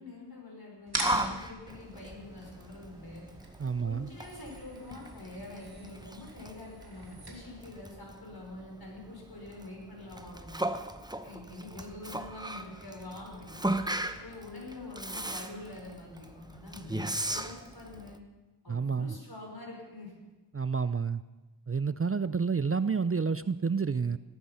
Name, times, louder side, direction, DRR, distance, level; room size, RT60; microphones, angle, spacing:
voice 1, 0.0-3.3 3.9-10.6 11.2-13.7 14.2-18.2 18.6-20.1, left 2 dB, 60° left, -1 dB, 5.7 m, -45 dB
sound 1, 0.9-7.9, right 2 dB, 65° right, 3.2 m, -42 dB
Yell, 1.0-18.2, right 1 dB, 10° right, 0.9 m, -38 dB
voice 2, 3.6-4.1 18.7-19.1 20.5-21.2 21.7-24.2, right 5 dB, 35° right, 14 dB, 0.4 m, -29 dB
17.0 x 14.0 x 5.7 m, 1.1 s
wide cardioid pair, 40°, 42 cm